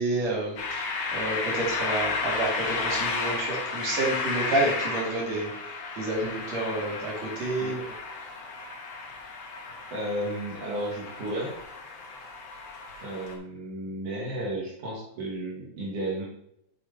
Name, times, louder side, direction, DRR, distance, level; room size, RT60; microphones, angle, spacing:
voice 1, 0.0-5.5 6.0-7.8, right 2 dB, 60° right, -4 dB, 3.7 m, -29 dB
sound 1, 0.6-13.3, left 4 dB, 60° left, 2.6 m, -33 dB
voice 2, 9.9-11.6 13.0-16.3, right 1 dB, 80° right, -4 dB, 3.3 m, -33 dB
8.0 x 7.9 x 3.4 m, 0.74 s
omnidirectional pair, 3.4 m